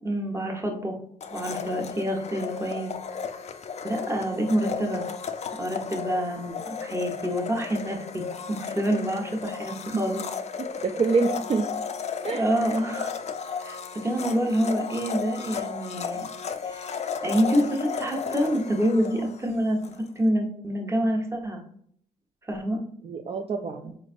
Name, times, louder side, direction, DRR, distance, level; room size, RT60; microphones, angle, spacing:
voice 1, 0.0-1.0 1.3-2.9 3.8-5.0 5.6-6.6 6.8-10.2 12.3-13.1 13.6-16.2 16.6-16.9 17.2-19.8 20.1-21.6 22.5-22.8, equal, 20° right, 1 dB, 1.0 m, -27 dB
Domestic sounds home sounds, 1.2-20.0, left 6 dB, 45° left, 0.4 m, -34 dB
voice 2, 10.6-11.7 12.2-12.5 23.0-23.9, right 4 dB, 40° right, 3 dB, 0.4 m, -26 dB
4.2 x 3.2 x 2.5 m, 0.65 s
cardioid pair, 85°, 15 cm